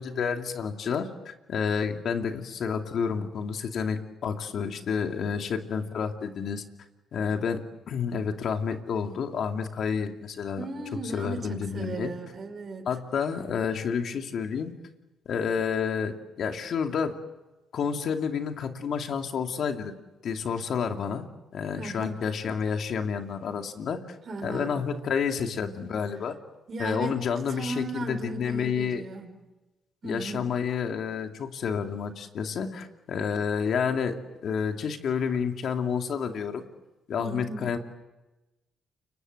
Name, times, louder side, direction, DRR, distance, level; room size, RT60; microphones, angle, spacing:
voice 1, 0.0-6.6 7.1-10.7 11.1-12.1 12.9-14.7 15.3-17.1 17.7-19.9 20.2-21.3 21.5-24.0 24.4-26.3 26.8-29.0 30.0-34.1 34.4-36.6 37.1-37.8, left 6 dB, 65° left, 5 dB, 2.5 m, -29 dB
voice 2, 10.6-13.0 21.8-22.2 24.3-24.8 26.7-27.2 27.5-29.4 30.0-30.5 37.2-37.7, right 3 dB, 45° right, 5 dB, 5.1 m, -36 dB
29.5 x 25.0 x 7.9 m, 1.1 s
cardioid pair, 90°, 0 cm